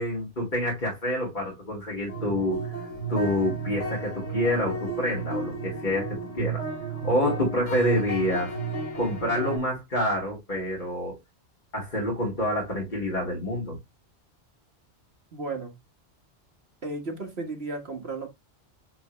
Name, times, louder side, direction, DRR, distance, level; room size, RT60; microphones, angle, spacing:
voice 1, 0.0-2.7 3.1-6.6 7.0-8.5 9.0-11.2 11.7-13.8, left 1 dB, 45° left, 2.2 m, -27 dB
sound 1, 2.1-9.6, right 3 dB, 90° left, 4.0 m, -33 dB
voice 2, 15.3-15.7 16.8-18.3, right 3 dB, 60° right, 1.8 m, -34 dB
8.7 x 3.6 x 3.1 m
omnidirectional pair, 1.2 m